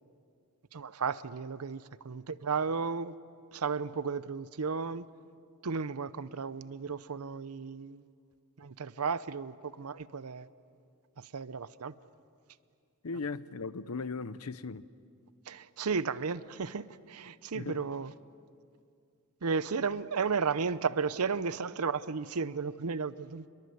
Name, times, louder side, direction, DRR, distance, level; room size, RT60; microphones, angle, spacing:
voice 1, 0.7-3.2 3.5-5.1 5.6-8.0 8.6-10.5 11.2-11.9 15.5-18.1 19.4-23.5, right 5 dB, 80° right, 16 dB, 0.7 m, -34 dB
voice 2, 13.0-14.8 17.5-17.8, left 4 dB, 75° left, 15 dB, 0.8 m, -37 dB
28.5 x 22.5 x 7.9 m, 2.4 s
head